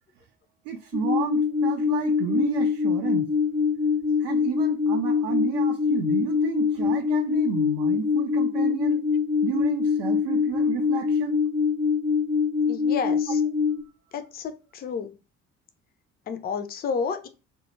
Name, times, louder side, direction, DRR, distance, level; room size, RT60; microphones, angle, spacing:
voice 1, 0.6-3.3 4.2-9.0 9.4-11.4, right 8 dB, 65° right, 0.6 m, -31 dB
sound 1, 0.9-13.8, left 5 dB, 85° left, 0.6 m, -24 dB
voice 2, 12.6-13.4 14.1-15.2 16.3-17.3, left 6 dB, 25° left, 0.4 m, -31 dB
2.2 x 2.1 x 3.0 m
figure-of-eight pair, 50°, 37 cm